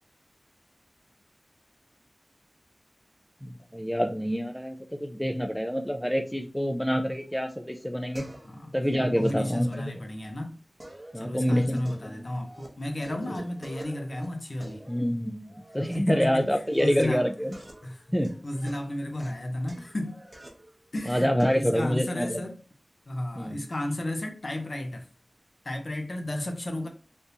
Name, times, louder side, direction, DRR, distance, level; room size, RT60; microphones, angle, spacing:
voice 1, 3.4-8.2 8.7-9.9 11.1-12.1 13.3-13.4 14.9-17.5 18.1-18.3 21.1-22.4 23.4-23.6, equal, 5° left, 0.3 m, -27 dB
sound 1, 7.3-8.7 9.0-10.3 10.8-12.7 13.0-15.9 16.4-21.7, right 1 dB, 25° right, 0.8 m, -48 dB
voice 2, 8.4-8.7 9.2-10.6 11.1-14.8 15.9-17.3 17.8-18.1 18.4-20.2 20.9-22.6 23.1-25.1 25.6-26.9, left 1 dB, 55° left, 0.6 m, -33 dB
3.5 x 2.6 x 2.7 m
wide cardioid pair, 75°, 0 cm